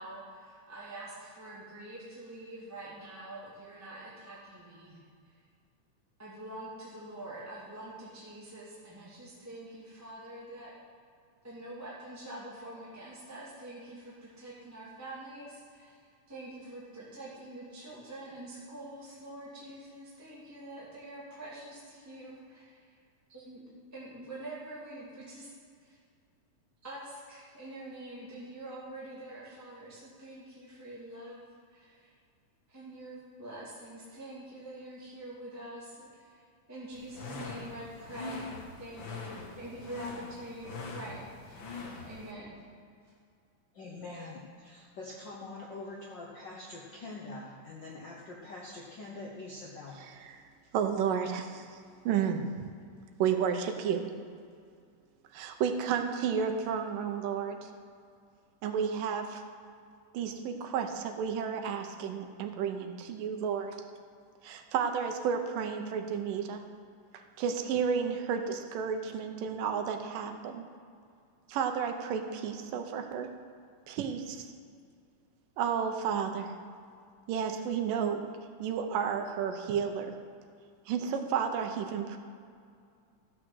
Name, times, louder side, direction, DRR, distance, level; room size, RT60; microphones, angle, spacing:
voice 1, 0.0-5.0 6.2-10.7 11.4-15.9 16.3-22.9 23.3-23.6 23.9-25.5 25.8-26.0 26.8-31.4 31.7-32.1 32.7-41.7 42.0-42.5, right 1 dB, 5° right, -8 dB, 1.3 m, -45 dB
sound 1, 36.9-42.3, left 3 dB, 55° left, 1.4 m, -43 dB
voice 2, 43.7-50.0, left 2 dB, 75° left, -2 dB, 1.0 m, -44 dB
voice 3, 50.7-51.7 52.1-52.6 53.2-54.1 55.3-57.7 58.6-59.4 60.1-63.8 64.4-66.6 67.1-70.7 71.5-73.3 73.9-74.5 75.6-76.5 77.3-78.2 78.6-80.1 80.9-82.2, right 7 dB, 90° right, 5 dB, 2.5 m, -32 dB
13.5 x 6.5 x 6.2 m, 2.3 s
omnidirectional pair, 3.7 m